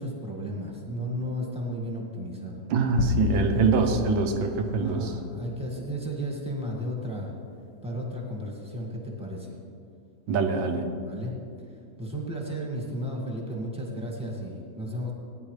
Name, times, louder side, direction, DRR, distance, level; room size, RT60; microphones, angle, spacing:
voice 1, 0.0-2.6 3.2-4.2 4.8-7.3 7.8-9.6 11.0-11.3 12.0-15.1, equal, 5° right, -2 dB, 1.8 m, -33 dB
voice 2, 2.7-5.1 10.3-10.9, right 4 dB, 85° right, 6 dB, 1.7 m, -24 dB
sound 1, 3.0-5.6, left 7 dB, 70° left, 1.2 m, -31 dB
18.0 x 9.9 x 3.3 m, 2.5 s
omnidirectional pair, 2.1 m